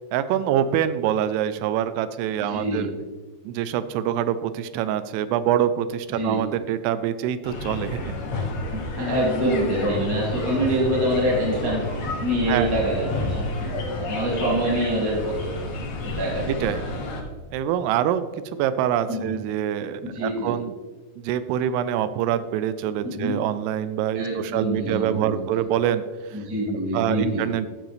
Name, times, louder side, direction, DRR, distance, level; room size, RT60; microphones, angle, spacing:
voice 1, 0.1-2.9 3.5-8.1 12.5-12.7 16.5-16.9 17.5-18.2 18.5-20.7 21.2-26.0 26.3-26.4 26.9-27.7, right 10 dB, 85° right, 13 dB, 2.6 m, -25 dB
voice 2, 2.4-2.8 6.1-6.4 8.7-11.8 12.2-13.7 14.1-15.5 16.1-16.5 19.1-19.4 20.0-20.5 23.0-23.4 24.1-25.4 26.3-27.5, equal, 10° right, -6 dB, 1.6 m, -25 dB
sound 1, 7.4-17.2, left 2 dB, 60° left, 2.0 m, -30 dB
12.5 x 6.3 x 3.4 m, 1.4 s
omnidirectional pair, 4.7 m